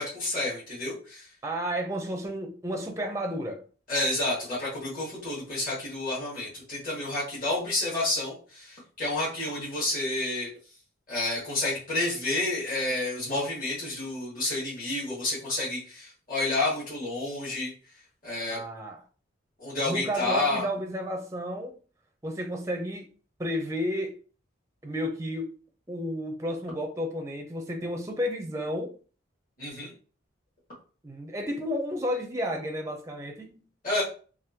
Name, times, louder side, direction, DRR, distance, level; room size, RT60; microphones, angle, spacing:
voice 1, 0.0-1.3 3.9-10.5 11.1-17.7 18.2-18.6 19.6-20.6 29.6-29.9 33.8-34.0, left 2 dB, 45° left, 1.5 m, -30 dB
voice 2, 1.4-3.6 18.5-19.0 19.9-21.8 22.2-23.1 23.4-24.2 24.8-25.5 25.9-28.9 31.0-33.6, equal, 15° right, 0.5 m, -32 dB
3.5 x 2.4 x 2.7 m
head